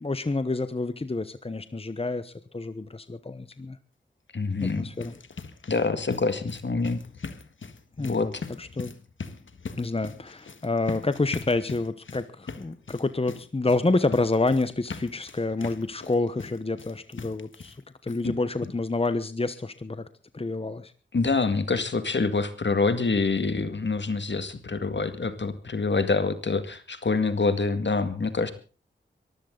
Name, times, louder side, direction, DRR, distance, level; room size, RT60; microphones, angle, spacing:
voice 1, 0.0-3.8 4.6-5.2 8.0-8.3 8.6-8.9 9.7-17.8 18.0-20.1 20.3-20.9, left 3 dB, 30° left, 12 dB, 1.1 m, -28 dB
voice 2, 4.3-4.9 5.7-7.0 8.0-8.3 18.2-18.3 18.6-18.7 21.1-28.5, left 4 dB, 70° left, 10 dB, 2.1 m, -26 dB
sound 1, 4.6-17.8 18.1-18.2 18.6-18.7 19.1-19.2, left 4 dB, 85° left, 1.6 m, -41 dB
22.5 x 15.0 x 3.9 m, 0.37 s
wide cardioid pair, 60°, 20 cm